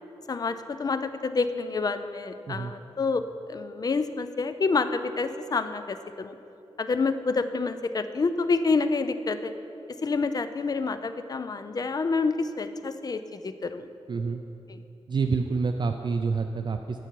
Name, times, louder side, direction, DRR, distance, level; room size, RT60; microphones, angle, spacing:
voice 1, 0.3-3.2 3.5-6.3 6.8-9.5 10.0-13.9 14.7-14.8, left 4 dB, 40° left, 11 dB, 0.4 m, -28 dB
voice 2, 14.1-14.4 15.1-17.0, right 4 dB, 45° right, 5 dB, 0.3 m, -27 dB
10.5 x 7.1 x 4.6 m, 2.8 s
wide cardioid pair, 155°, 10 cm